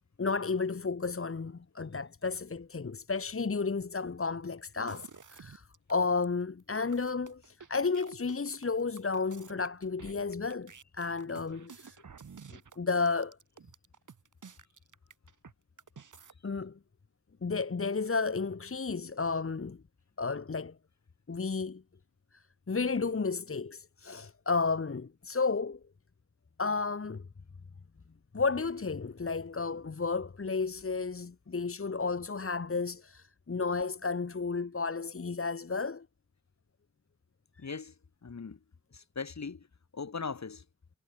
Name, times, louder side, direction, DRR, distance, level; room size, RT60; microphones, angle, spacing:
voice 1, 0.2-12.0 12.5-13.4 16.4-16.8 17.4-19.8 20.2-20.8 21.3-21.8 22.3-25.8 26.6-27.3 28.3-36.1, left 4 dB, 45° left, 1.6 m, -32 dB
sound 1, 4.7-5.9 6.2-6.3 6.6-15.5 15.8-16.3, right 6 dB, 80° right, 6.2 m, -52 dB
voice 2, 37.6-37.9 38.2-38.6 38.9-39.7 39.9-40.6, left 5 dB, 65° left, 3.7 m, -39 dB
cardioid pair, 40°, 30 cm